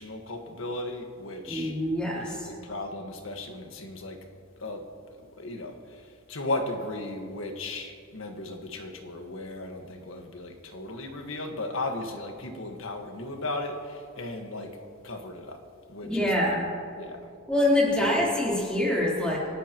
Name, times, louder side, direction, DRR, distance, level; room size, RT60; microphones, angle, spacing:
voice 1, 0.0-1.8 2.2-4.2 4.6-4.8 5.2-6.0 6.3-14.8 15.0-15.6 15.9-16.5 17.0-17.3, left 2 dB, 65° left, 1.6 m, -36 dB
voice 2, 1.5-2.5 16.0-16.6 17.5-19.4, left 1 dB, 5° left, 3.8 m, -25 dB
29.5 x 13.0 x 3.1 m
head